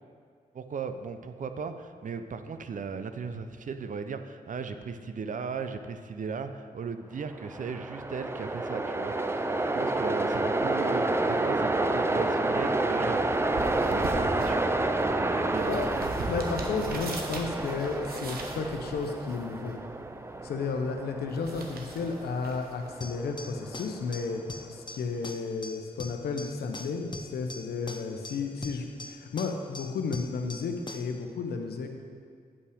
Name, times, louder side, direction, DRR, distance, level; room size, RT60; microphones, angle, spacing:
voice 1, 0.5-13.2 13.7-14.6 15.2-15.7, right 5 dB, 55° right, 9 dB, 0.6 m, -37 dB
Train, 7.3-24.5, right 2 dB, 15° right, 0.5 m, -30 dB
sound 1, 12.8-23.8, right 2 dB, 70° right, 1.1 m, -42 dB
voice 2, 16.3-19.8 20.4-24.4 24.7-32.0, left 4 dB, 80° left, 5 dB, 0.8 m, -33 dB
sound 2, 23.0-31.2, left 3 dB, 30° left, 0.7 m, -43 dB
9.6 x 5.6 x 5.0 m, 2.1 s
cardioid pair, 65°, 16 cm